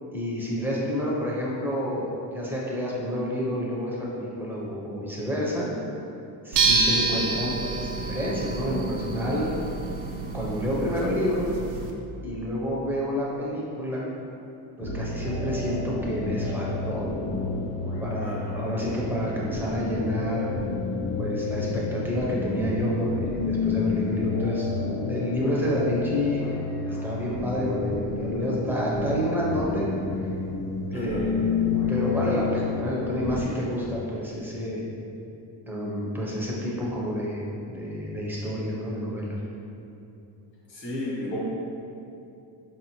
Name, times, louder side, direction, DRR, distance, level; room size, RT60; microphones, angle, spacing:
voice 1, 0.1-5.7 6.4-9.5 10.3-11.5 12.2-14.1 14.8-17.1 18.0-20.5 21.2-26.4 26.9-29.9 30.2-30.3 30.9-31.5 31.9-34.9 35.7-39.4, equal, 5° right, -5 dB, 0.4 m, -29 dB
sound 1, 6.5-11.9, right 4 dB, 80° right, 0.6 m, -28 dB
sound 2, 14.8-33.4, left 4 dB, 50° left, 0.7 m, -30 dB
voice 2, 18.2-18.7 30.9-31.3 40.7-41.4, left 1 dB, 65° left, -6 dB, 1.2 m, -34 dB
4.3 x 2.7 x 2.8 m, 2.8 s
cardioid pair, 150°, 42 cm